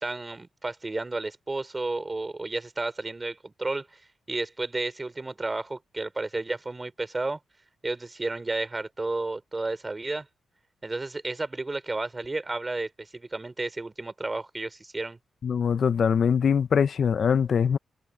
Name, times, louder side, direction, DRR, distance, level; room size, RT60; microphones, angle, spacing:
voice 1, 0.0-4.0 4.3-7.4 7.8-10.3 10.8-15.2, right 2 dB, 20° right, 3.1 m, -32 dB
voice 2, 15.4-17.8, left 7 dB, 55° left, 0.8 m, -22 dB
open air
cardioid pair, 105°, 0 cm